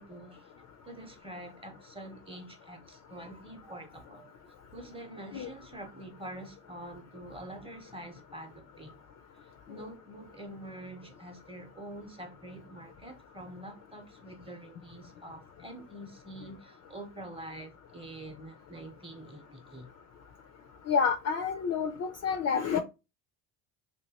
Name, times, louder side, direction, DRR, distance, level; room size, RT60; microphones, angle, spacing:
voice 1, 0.0-4.3 4.7-8.9 9.3-19.9, right 1 dB, 10° right, 0.8 m, -46 dB
voice 2, 20.9-22.8, left 6 dB, 40° left, 0.4 m, -28 dB
3.0 x 2.7 x 2.8 m
supercardioid pair, 85°, 45 cm